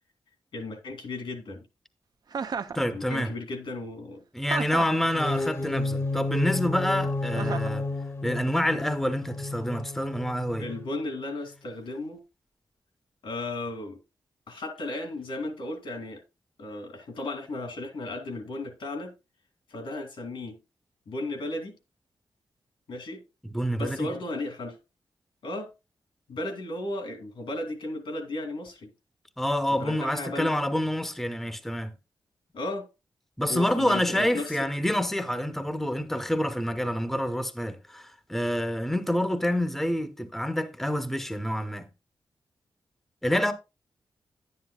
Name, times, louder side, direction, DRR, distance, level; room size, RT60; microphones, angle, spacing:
voice 1, 0.5-1.6 2.9-4.2 10.6-12.2 13.2-14.0 14.5-16.2 16.6-19.1 19.7-20.6 21.1-21.7 22.9-23.2 23.8-24.8 25.4-25.7 26.3-28.9 29.8-30.5 32.5-32.9 33.5-34.7, left 2 dB, 80° left, 2.3 m, -35 dB
Chuckle chortle, 2.3-2.8 4.5-5.0 7.4-7.8, right 5 dB, 55° right, 0.5 m, -33 dB
voice 2, 2.7-3.3 4.3-7.9 8.2-10.7 23.5-24.1 29.4-31.9 33.4-41.9 43.2-43.5, equal, 5° left, 0.7 m, -27 dB
sound 1, 5.0-11.0, left 2 dB, 35° left, 0.8 m, -31 dB
10.5 x 9.6 x 2.2 m
wide cardioid pair, 100°, 8 cm